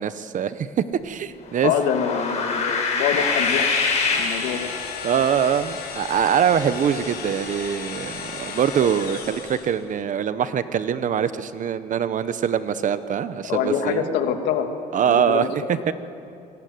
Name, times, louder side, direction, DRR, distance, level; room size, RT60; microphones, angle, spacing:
voice 1, 0.0-1.7 5.0-14.1 14.9-15.9, right 8 dB, 50° right, 13 dB, 1.2 m, -23 dB
sound 1, 1.5-5.2, left 4 dB, 40° left, 7.0 m, -25 dB
voice 2, 1.6-3.9 4.1-4.7 13.5-14.7 15.0-15.5, left 8 dB, 90° left, 5 dB, 2.5 m, -25 dB
sound 2, 3.1-9.8, left 5 dB, 65° left, 5.9 m, -34 dB
27.0 x 22.0 x 9.6 m, 2.7 s
cardioid pair, 110°, 17 cm